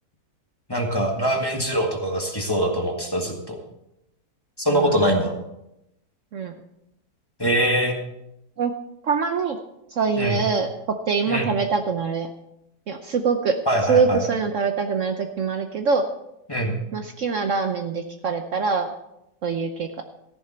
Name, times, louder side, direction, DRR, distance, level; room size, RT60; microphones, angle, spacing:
voice 1, 0.7-3.6 4.6-5.4 7.4-7.9 10.2-10.4 11.3-11.5 13.6-14.2 16.5-16.8, equal, 15° left, 1 dB, 1.7 m, -23 dB
voice 2, 4.7-5.0 6.3-6.6 8.6-8.7 9.0-9.6 9.9-12.3 12.9-13.6 13.9-16.1 16.9-18.9 19.4-20.0, right 5 dB, 60° right, 6 dB, 1.0 m, -24 dB
14.0 x 11.0 x 4.4 m, 0.85 s
omnidirectional pair, 1.7 m